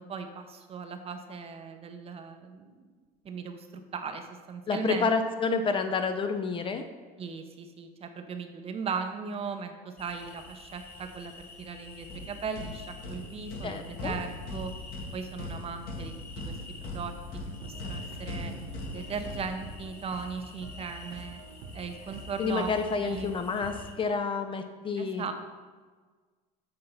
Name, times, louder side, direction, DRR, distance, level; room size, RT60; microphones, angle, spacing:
voice 1, 0.0-2.9 3.2-5.1 7.2-14.7 15.1-16.1 16.4-16.5 16.8-17.1 17.6-18.5 18.9-21.4 21.7-22.7 23.0-23.3 25.0-25.3, right 5 dB, 30° right, 7 dB, 0.6 m, -38 dB
voice 2, 4.7-6.8 13.6-14.2 22.4-25.2, left 4 dB, 25° left, 7 dB, 0.4 m, -29 dB
sound 1, 10.0-23.9, left 3 dB, 10° left, 1.3 m, -49 dB
sound 2, 12.1-20.1, left 2 dB, 50° left, 1.2 m, -40 dB
sound 3, 17.6-24.1, right 1 dB, 70° right, 0.9 m, -47 dB
7.7 x 2.8 x 5.4 m, 1.4 s
supercardioid pair, 100°, 19 cm